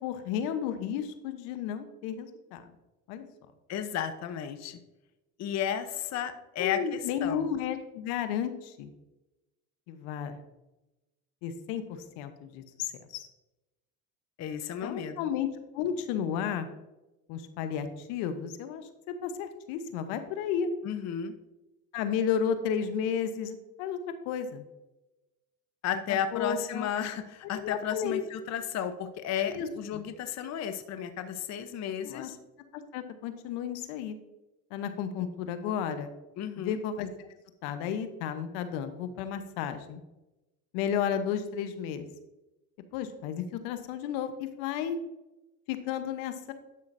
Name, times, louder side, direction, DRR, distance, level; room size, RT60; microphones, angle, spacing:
voice 1, 0.0-2.6 3.1-3.3 6.6-8.9 9.9-10.4 11.4-13.3 14.8-15.5 15.7-16.7 17.3-20.7 21.9-24.0 24.2-24.6 26.3-26.9 27.5-28.2 29.5-30.0 32.0-32.3 32.7-34.1 34.7-36.1 36.6-37.3 37.6-40.0 40.7-42.1 42.9-45.0 45.7-46.5, left 8 dB, 70° left, 9 dB, 1.0 m, -33 dB
voice 2, 3.7-4.8 5.4-7.5 14.4-15.3 20.8-21.3 25.8-32.4 36.4-36.8, left 9 dB, 40° left, 9 dB, 0.8 m, -33 dB
11.0 x 5.7 x 2.6 m, 1.0 s
supercardioid pair, 90°, 41 cm